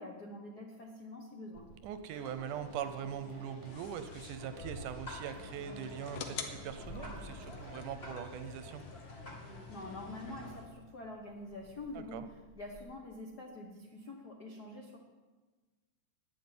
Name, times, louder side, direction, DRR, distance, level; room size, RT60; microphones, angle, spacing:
voice 1, 0.0-1.7 9.5-15.0, left 2 dB, 80° left, 0 dB, 0.8 m, -46 dB
Meow, 1.5-12.8, equal, 40° left, 2.1 m, -55 dB
voice 2, 1.8-8.8 11.9-12.3, right 8 dB, 75° right, 10 dB, 2.0 m, -42 dB
sound 1, 2.1-10.5, left 1 dB, 20° left, 1.8 m, -50 dB
sound 2, 3.7-10.7, left 5 dB, 65° left, 1.9 m, -48 dB
11.0 x 8.8 x 9.5 m, 1.3 s
omnidirectional pair, 4.0 m